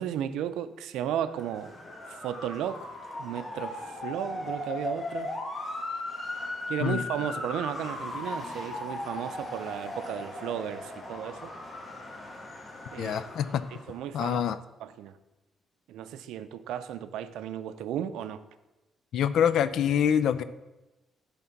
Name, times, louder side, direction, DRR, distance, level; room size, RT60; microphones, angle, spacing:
voice 1, 0.0-1.8 2.1-2.9 3.2-5.3 6.7-11.5 12.9-13.2 13.7-14.4 14.8-15.2 15.9-18.4, right 10 dB, 85° right, 12 dB, 0.5 m, -34 dB
Motor vehicle (road) / Siren, 1.3-14.0, left 2 dB, 30° left, 1.5 m, -37 dB
voice 2, 13.0-13.6 14.1-14.6 19.1-20.4, left 9 dB, 75° left, 14 dB, 0.4 m, -25 dB
11.0 x 3.6 x 5.8 m, 1.1 s
cardioid pair, 90°, 0 cm